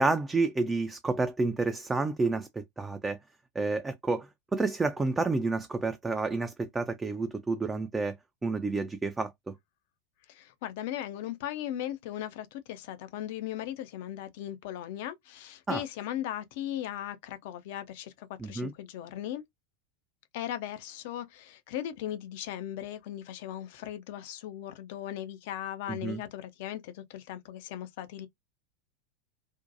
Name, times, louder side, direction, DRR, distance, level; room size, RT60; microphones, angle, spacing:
voice 1, 0.0-3.2 3.6-8.2 8.4-9.5 15.7-15.8 18.4-18.7 26.0-26.2, right 3 dB, 15° right, 0.3 m, -29 dB
voice 2, 10.3-19.4 20.3-28.3, left 11 dB, 60° left, 0.4 m, -38 dB
2.6 x 2.1 x 2.6 m
figure-of-eight pair, 85°, 0 cm